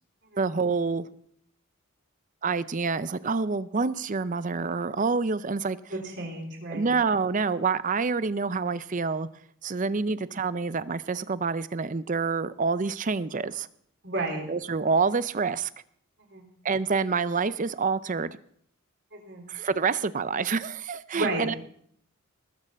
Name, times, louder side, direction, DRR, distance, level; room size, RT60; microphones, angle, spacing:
voice 1, 0.4-1.1 2.4-5.8 6.7-9.3 9.6-13.7 14.5-15.7 16.6-18.3 19.5-21.5, right 4 dB, 35° right, 15 dB, 0.5 m, -27 dB
voice 2, 5.9-6.9 10.0-10.1 14.0-14.4 16.3-16.5 19.1-19.5 21.1-21.5, right 2 dB, 55° right, 2 dB, 3.6 m, -32 dB
19.0 x 6.6 x 7.3 m, 0.65 s
head